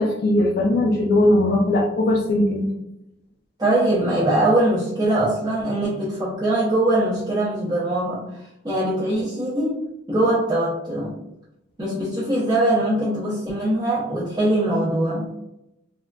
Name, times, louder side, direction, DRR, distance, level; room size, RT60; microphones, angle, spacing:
voice 1, 0.0-2.7, left 1 dB, 50° left, -1 dB, 0.4 m, -19 dB
voice 2, 3.6-8.2 8.6-9.8 10.1-11.1 11.8-15.3, right 1 dB, 20° right, -9 dB, 0.5 m, -22 dB
3.3 x 2.4 x 2.2 m, 0.86 s
head